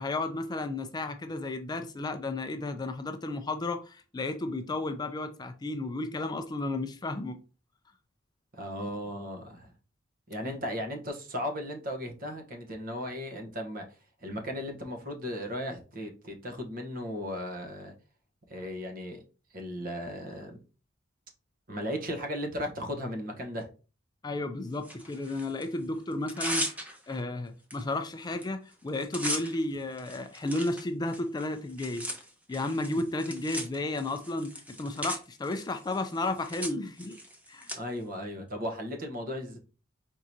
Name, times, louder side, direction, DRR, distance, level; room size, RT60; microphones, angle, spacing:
voice 1, 0.0-7.4 10.4-10.5 24.2-26.7 27.1-32.1 32.5-37.2 37.5-37.7, left 2 dB, 20° left, 0.3 m, -33 dB
voice 2, 8.5-9.7 10.3-13.8 14.2-17.9 18.5-19.2 19.5-20.6 21.7-23.7 37.7-39.6, equal, 45° right, 1.0 m, -36 dB
Tearing, 24.8-25.7 26.1-27.2 27.7-27.8 28.1-28.4 28.7-37.8, equal, 10° right, 0.8 m, -38 dB
4.6 x 3.7 x 2.7 m
head